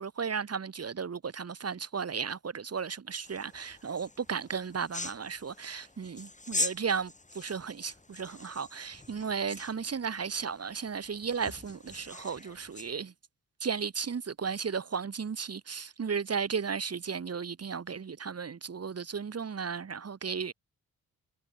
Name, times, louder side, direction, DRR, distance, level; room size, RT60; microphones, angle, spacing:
voice 1, 0.0-13.1 13.6-20.5, right 6 dB, 40° right, 1.4 m, -35 dB
sound 1, 3.2-12.9, left 2 dB, 20° left, 2.6 m, -41 dB
supercardioid pair, 45°, 37 cm